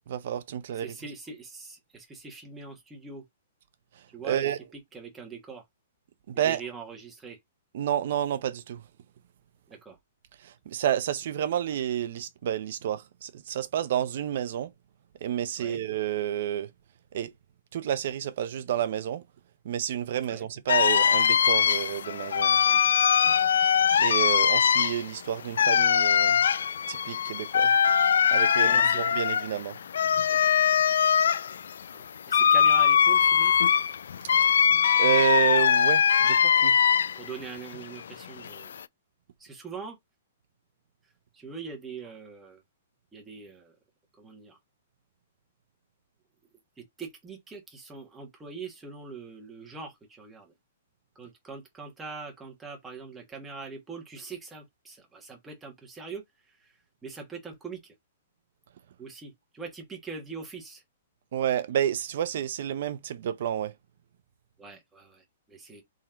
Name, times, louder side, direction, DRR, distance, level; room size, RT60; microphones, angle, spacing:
voice 1, 0.1-0.9 3.9-4.6 6.3-6.6 7.7-8.8 10.4-14.7 15.2-16.7 17.1-17.3 17.7-19.2 19.6-22.6 24.0-26.4 26.9-27.7 28.3-29.8 35.0-36.8 61.3-63.7, right 10 dB, 45° right, 0.7 m, -30 dB
voice 2, 0.7-3.2 4.1-5.6 6.4-7.4 9.7-10.0 15.6-15.8 20.3-20.5 23.4-23.5 28.6-29.0 31.9-33.5 37.1-38.8 39.4-40.0 41.3-42.6 43.1-43.7 44.2-44.6 46.8-50.5 51.1-57.9 59.0-60.8 64.6-65.8, right 5 dB, 5° right, 1.3 m, -42 dB
sound 1, 20.7-37.3 37.7-38.8, left 8 dB, 75° left, 0.3 m, -22 dB
3.7 x 3.1 x 4.3 m
hypercardioid pair, 175°, 0 cm